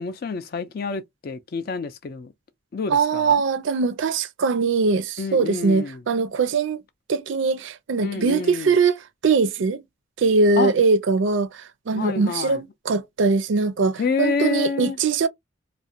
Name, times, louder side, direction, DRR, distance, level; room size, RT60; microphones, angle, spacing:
voice 1, 0.0-2.3 2.7-3.4 5.2-6.0 8.0-8.7 10.6-10.7 11.9-12.6 14.0-15.0, left 4 dB, 45° left, 0.4 m, -28 dB
voice 2, 2.9-6.8 7.1-9.8 10.2-15.3, right 4 dB, 65° right, 0.4 m, -21 dB
2.4 x 2.0 x 2.6 m
head